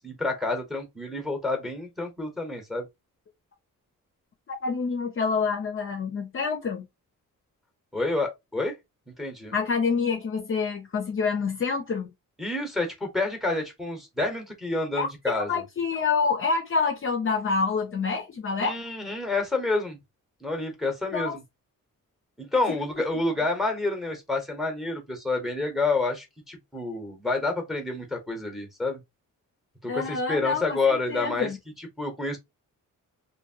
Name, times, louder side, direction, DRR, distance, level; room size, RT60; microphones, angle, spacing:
voice 1, 0.0-2.9 7.9-8.8 9.2-9.5 12.4-15.6 18.6-20.0 20.4-21.4 22.4-29.0 29.8-31.5 31.8-32.4, left 3 dB, ahead, 0.9 m, -28 dB
voice 2, 4.5-6.9 9.5-12.1 14.9-15.1 15.3-18.8 21.1-21.4 22.7-22.8 29.9-31.6, left 5 dB, 40° left, 0.5 m, -27 dB
2.8 x 2.6 x 2.7 m
wide cardioid pair, 165°, 33 cm